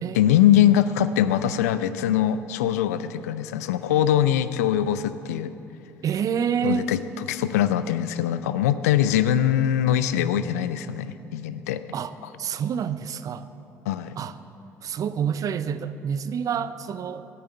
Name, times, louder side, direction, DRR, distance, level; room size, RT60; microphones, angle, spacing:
voice 1, 0.1-5.5 6.6-7.0 7.3-11.8 13.9-14.2, left 11 dB, 75° left, 13 dB, 0.4 m, -22 dB
voice 2, 6.0-6.9 11.9-12.1 12.4-13.5 14.2-14.4 14.8-17.3, right 7 dB, 45° right, 14 dB, 0.5 m, -28 dB
9.0 x 8.6 x 8.0 m, 2.9 s
figure-of-eight pair, 55°, 8 cm